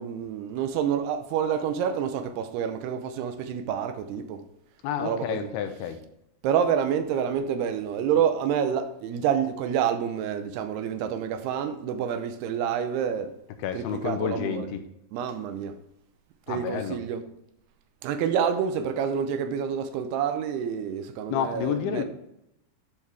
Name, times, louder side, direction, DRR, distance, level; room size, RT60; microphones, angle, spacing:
voice 1, 0.0-4.4 5.0-5.5 6.4-13.3 13.7-14.7 15.1-15.8 16.5-17.2 18.0-22.1, right 8 dB, 85° right, 2.7 m, -28 dB
voice 2, 4.8-6.0 13.6-14.8 16.5-17.0 21.3-22.1, left 8 dB, 80° left, 2.7 m, -29 dB
10.5 x 4.7 x 3.4 m
omnidirectional pair, 4.7 m